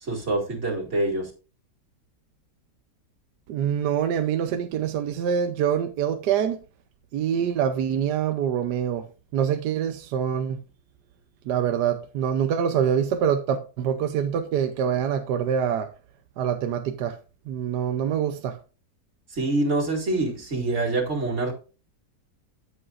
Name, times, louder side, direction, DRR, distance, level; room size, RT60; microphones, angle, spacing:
voice 1, 0.0-1.3 19.3-21.5, right 2 dB, 40° right, 2.5 m, -25 dB
voice 2, 3.5-6.6 7.1-9.1 9.3-10.6 11.5-15.9 16.4-17.2 17.5-18.6, right 8 dB, 75° right, 1.3 m, -25 dB
12.5 x 7.8 x 2.5 m
omnidirectional pair, 1.8 m